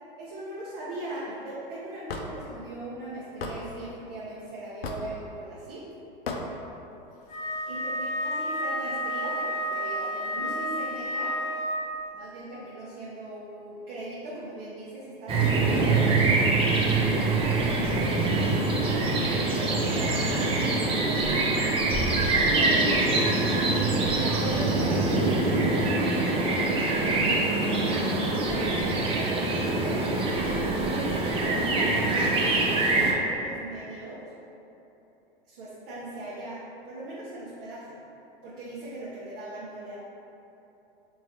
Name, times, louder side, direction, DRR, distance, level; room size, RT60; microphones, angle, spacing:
voice 1, 0.2-5.9 7.7-11.3 12.1-16.5 17.1-18.9 19.3-21.7 22.5-23.3 24.0-26.0 26.8-28.8 29.1-30.1 30.8-32.2 32.7-34.2 35.5-38.0 38.4-40.0, right 1 dB, 55° right, -8 dB, 0.9 m, -39 dB
Hammer / Wood, 2.1-2.3 3.4-3.6 4.8-5.1 6.3-6.4, left 3 dB, 85° left, 0.5 m, -33 dB
Wind instrument woodwind instrument, 7.3-12.0, equal, 30° left, 0.8 m, -31 dB
sound 1, 15.3-33.1, right 2 dB, 20° right, 0.4 m, -24 dB
4.2 x 2.8 x 2.9 m, 3.0 s
hypercardioid pair, 95°, 29 cm